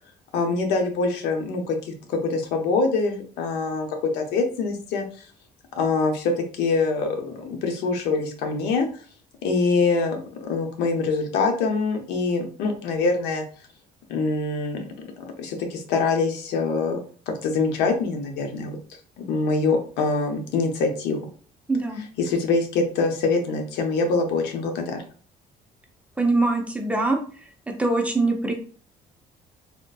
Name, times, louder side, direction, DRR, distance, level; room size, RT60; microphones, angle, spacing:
voice 1, 0.3-3.9 4.1-5.3 5.8-8.9 9.4-13.4 14.1-17.0 17.4-18.8 19.3-21.3 22.2-25.0, left 4 dB, 90° left, 4 dB, 0.7 m, -24 dB
voice 2, 21.7-22.1 26.2-27.2 27.8-28.5, right 2 dB, 10° right, 2 dB, 0.6 m, -22 dB
3.6 x 2.5 x 2.3 m, 0.43 s
cardioid pair, 110°, 17 cm